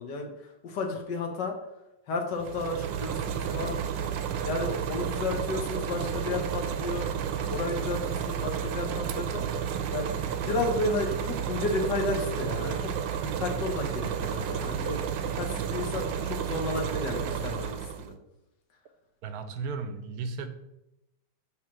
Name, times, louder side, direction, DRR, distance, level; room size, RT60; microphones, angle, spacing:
voice 1, 0.0-1.6 2.1-9.7 9.9-10.1 10.4-12.9 13.4-18.1, left 3 dB, 65° left, 3 dB, 1.7 m, -33 dB
sound 1, 2.3-18.1, right 8 dB, 85° right, 1.4 m, -32 dB
voice 2, 19.2-20.5, right 4 dB, 65° right, 8 dB, 1.0 m, -35 dB
7.3 x 3.3 x 6.0 m, 0.89 s
omnidirectional pair, 2.1 m